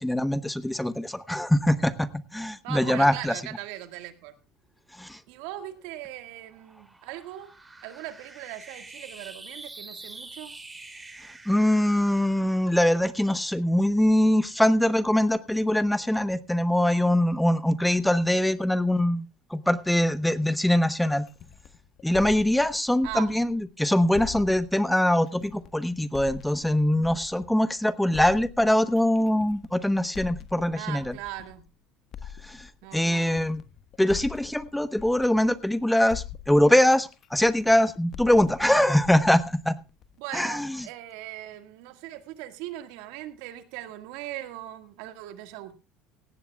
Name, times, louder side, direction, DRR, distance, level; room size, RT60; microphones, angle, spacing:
voice 1, 0.0-3.4 5.0-5.2 11.5-19.2 19.5-21.3 22.0-31.2 32.5-32.7 32.9-33.6 34.0-39.8 40.3-40.8, left 1 dB, 5° left, 14 dB, 1.0 m, -23 dB
voice 2, 2.6-4.4 5.3-7.5 7.8-10.5 23.0-23.3 30.7-31.6 32.8-33.5 40.2-45.7, right 14 dB, 75° right, 9 dB, 1.8 m, -39 dB
sound 1, 5.6-14.2, right 2 dB, 15° right, 3.1 m, -47 dB
sound 2, 21.3-23.7 24.1-27.7 28.1-31.7 32.1-35.8 36.1-40.2, left 9 dB, 50° left, 1.4 m, -43 dB
17.5 x 15.5 x 2.3 m, 0.30 s
hypercardioid pair, 75°, 0 cm